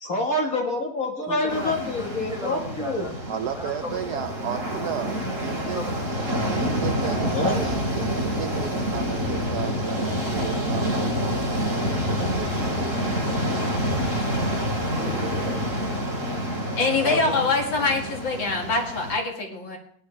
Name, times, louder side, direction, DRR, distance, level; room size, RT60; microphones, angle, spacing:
voice 1, 0.0-3.1 7.3-7.7 17.0-17.2, left 2 dB, 50° left, 1 dB, 2.2 m, -27 dB
voice 2, 1.2-4.5 5.1-5.2 5.6-6.5 14.8-15.9, left 1 dB, ahead, -2 dB, 4.2 m, -37 dB
sound 1, 1.5-19.2, equal, 30° right, 3.9 m, -27 dB
voice 3, 3.3-5.8 6.5-7.8 8.2-13.2, right 9 dB, 70° right, 8 dB, 1.0 m, -34 dB
voice 4, 16.8-19.8, left 3 dB, 75° left, 1 dB, 3.0 m, -24 dB
18.5 x 10.5 x 3.4 m, 0.63 s
omnidirectional pair, 2.1 m